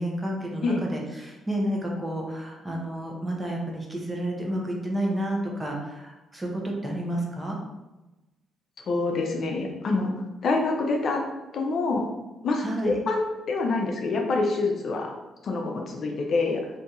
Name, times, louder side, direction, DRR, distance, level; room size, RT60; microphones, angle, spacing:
voice 1, 0.0-7.6 12.6-13.0, right 1 dB, 15° right, -1 dB, 0.8 m, -30 dB
voice 2, 8.8-10.1 10.4-11.2 11.5-12.0 12.4-15.1 15.4-16.6, left 3 dB, 55° left, 2 dB, 0.5 m, -26 dB
2.7 x 2.7 x 3.5 m, 1.0 s
cardioid pair, 90°, 0 cm